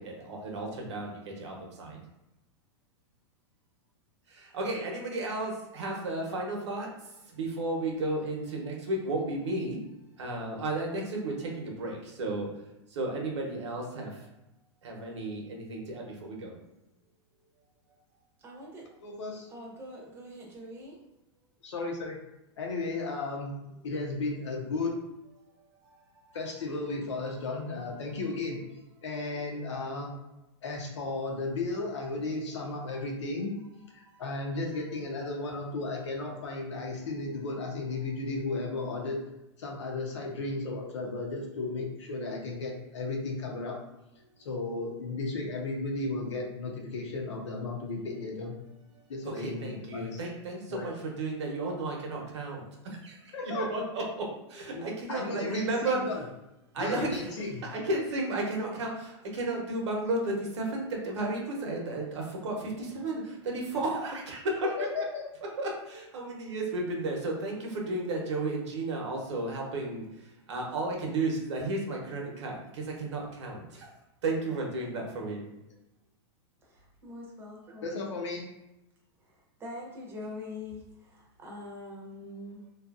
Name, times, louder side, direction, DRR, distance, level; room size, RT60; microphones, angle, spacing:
voice 1, 0.0-2.0 4.3-9.8 10.2-12.5 12.9-14.3 14.8-16.5 25.9-26.0 34.1-34.2 49.4-56.0 56.7-64.7 65.6-73.9 74.2-75.4, right 2 dB, 80° right, 0 dB, 0.9 m, -33 dB
voice 2, 18.4-18.9 19.5-21.0 76.6-77.9 79.3-82.7, left 2 dB, 15° right, -3 dB, 0.8 m, -44 dB
voice 3, 19.0-19.5 21.6-22.2 22.6-23.5 23.8-24.9 26.3-28.6 29.0-30.1 30.6-33.5 33.9-39.2 39.6-43.7 44.4-48.5 49.1-50.2 50.7-50.9 53.3-53.7 54.7-54.8 55.1-56.2 56.8-57.6 64.8-65.2 77.8-78.5, left 3 dB, 85° left, 0 dB, 0.8 m, -34 dB
2.7 x 2.4 x 2.4 m, 0.91 s
hypercardioid pair, 135°, 15 cm